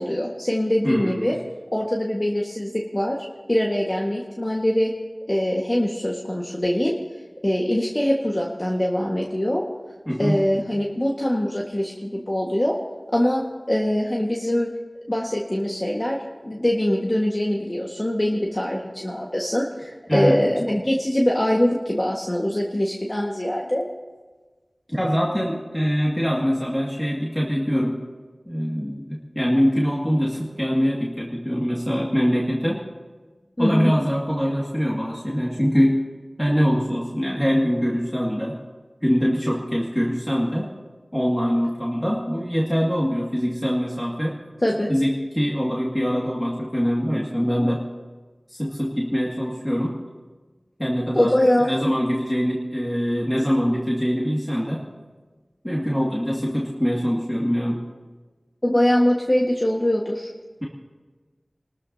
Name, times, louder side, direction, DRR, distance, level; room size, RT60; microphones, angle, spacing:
voice 1, 0.0-1.4 1.7-3.2 3.5-4.9 5.3-6.9 7.4-9.7 10.2-12.8 13.1-14.7 15.1-16.2 16.4-23.8 33.6-33.9 44.6-44.9 51.1-51.7 58.6-60.3, left 1 dB, 30° left, -2 dB, 1.6 m, -23 dB
voice 2, 0.8-1.4 10.1-10.4 20.1-20.4 24.9-28.0 28.5-32.8 33.6-36.0 36.4-38.6 39.0-40.7 41.1-44.4 44.9-47.9 48.5-50.0 50.8-51.3 51.6-54.8 55.6-57.8, equal, 15° left, -4 dB, 2.2 m, -23 dB
29.0 x 13.5 x 2.8 m, 1.3 s
wide cardioid pair, 45°, 0 cm